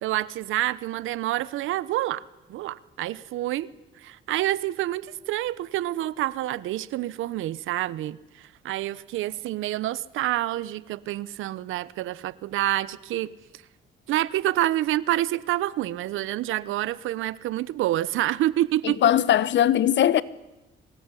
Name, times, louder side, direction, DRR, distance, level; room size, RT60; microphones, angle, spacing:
voice 1, 0.0-2.2 2.5-3.7 4.0-13.3 14.1-19.0, right 14 dB, 85° right, 0.9 m, -27 dB
voice 2, 18.8-20.2, left 11 dB, 65° left, 1.1 m, -20 dB
24.0 x 20.0 x 9.8 m
cardioid pair, 90°, 20 cm